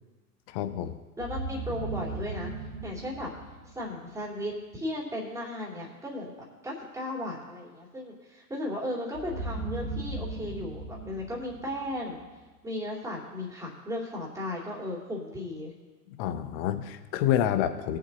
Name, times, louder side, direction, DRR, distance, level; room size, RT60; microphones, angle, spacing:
voice 1, 0.5-1.0 16.1-18.0, left 10 dB, 35° left, 10 dB, 0.9 m, -28 dB
voice 2, 1.2-2.5 2.8-3.3 3.6-6.3 6.6-12.2 12.6-15.7, left 1 dB, 5° right, -3 dB, 3.0 m, -35 dB
sound 1, 1.2-4.2 9.1-12.4, right 2 dB, 85° right, 2.6 m, -37 dB
20.5 x 7.4 x 2.9 m, 1.3 s
figure-of-eight pair, 100°, 50 cm